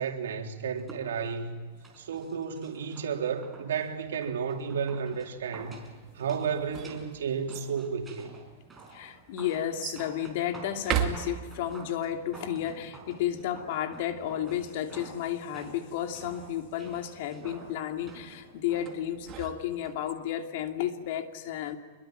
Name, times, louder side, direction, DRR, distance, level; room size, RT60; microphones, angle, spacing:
voice 1, 0.0-1.6 2.0-5.8 6.1-8.4, right 6 dB, 90° right, 3.6 m, -32 dB
sound 1, 0.8-19.6 19.9-20.0, right 3 dB, 10° right, 4.8 m, -50 dB
sound 2, 6.4-7.7 8.6-8.7 9.8-10.1 10.7-11.8 18.9-20.1, right 10 dB, 30° right, 2.5 m, -35 dB
voice 2, 8.9-21.8, left 10 dB, 55° left, 2.8 m, -32 dB
27.0 x 22.5 x 9.2 m
supercardioid pair, 155°, 0 cm